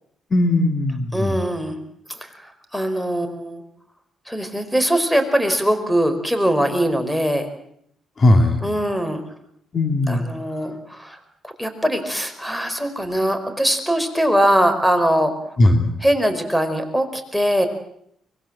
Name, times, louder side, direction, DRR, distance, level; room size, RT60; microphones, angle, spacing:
voice 1, 0.3-1.4 8.2-8.6 9.7-10.2 15.6-15.9, left 1 dB, 40° left, 5 dB, 2.8 m, -18 dB
voice 2, 1.1-1.8 2.1-3.6 4.3-7.4 8.6-9.2 10.1-11.2 11.4-15.3 16.0-17.7, equal, ahead, 9 dB, 4.9 m, -21 dB
25.0 x 21.5 x 7.7 m, 0.71 s
cardioid pair, 90°, 0 cm